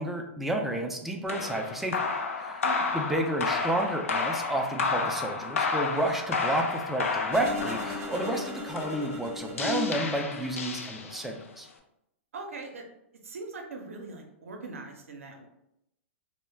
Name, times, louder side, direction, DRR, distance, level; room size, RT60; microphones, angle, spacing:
voice 1, 0.0-2.1 2.4-2.7 2.9-11.7, right 1 dB, 5° right, 2 dB, 0.3 m, -31 dB
sound 1, 1.3-11.4, left 4 dB, 85° left, 0.4 m, -31 dB
sound 2, 7.3-10.7, left 3 dB, 40° right, 0.6 m, -37 dB
voice 2, 12.3-12.8 13.2-15.5, right 3 dB, 85° right, 2 dB, 0.5 m, -41 dB
2.1 x 2.0 x 3.2 m, 0.81 s
hypercardioid pair, 120°, 7 cm